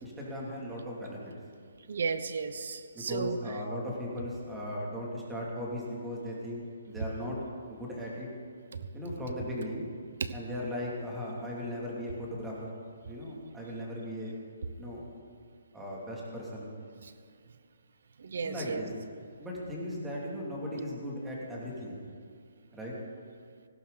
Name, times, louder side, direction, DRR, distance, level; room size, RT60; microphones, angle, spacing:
voice 1, 0.0-1.2 2.9-7.4 7.7-8.3 8.9-9.9 10.3-12.7 13.0-14.3 14.8-15.0 15.7-16.7 18.4-18.9 19.4-22.0 22.7-22.9, left 1 dB, 5° right, -4 dB, 2.8 m, -37 dB
voice 2, 1.9-3.4 8.7-8.8 10.2-10.3 17.0-17.1 18.2-18.9, right 5 dB, 65° right, 11 dB, 1.0 m, -34 dB
18.0 x 16.0 x 4.2 m, 2.1 s
hypercardioid pair, 165°, 0 cm